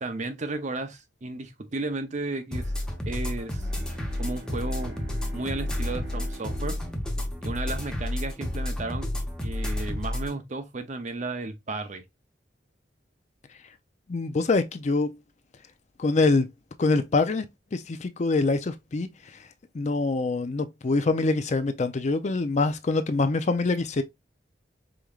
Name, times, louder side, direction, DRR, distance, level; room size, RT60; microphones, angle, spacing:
voice 1, 0.0-2.7 3.1-3.7 4.2-5.0 5.3-6.8 7.4-9.1 9.4-12.0, right 2 dB, 40° right, 0.6 m, -33 dB
sound 1, 2.5-10.3, left 1 dB, 5° left, 0.9 m, -31 dB
Bowed string instrument, 3.4-8.8, right 1 dB, 80° right, 1.7 m, -47 dB
voice 2, 14.1-15.2 16.0-16.5 16.8-17.5 17.7-19.4 19.7-24.0, left 3 dB, 40° left, 0.5 m, -25 dB
5.0 x 3.1 x 2.3 m
head